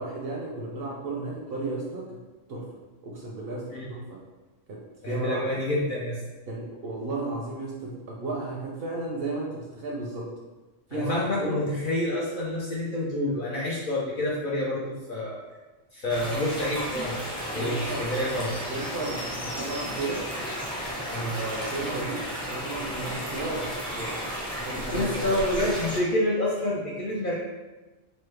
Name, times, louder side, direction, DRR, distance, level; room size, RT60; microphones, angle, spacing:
voice 1, 0.0-2.2 2.5-2.8 3.0-4.2 4.7-5.5 6.5-10.3 10.9-11.6 17.6-18.0 18.7-20.2 21.2-24.2 24.6-25.3, right 2 dB, 60° right, -3 dB, 0.6 m, -34 dB
voice 2, 5.0-6.2 10.9-15.4 15.9-17.2 17.5-18.5 21.1-21.4 24.9-27.3, left 1 dB, 60° left, -5 dB, 0.6 m, -28 dB
sound 1, 16.1-26.0, equal, 5° left, 0.4 m, -33 dB
3.1 x 2.1 x 3.2 m, 1.1 s
omnidirectional pair, 1.3 m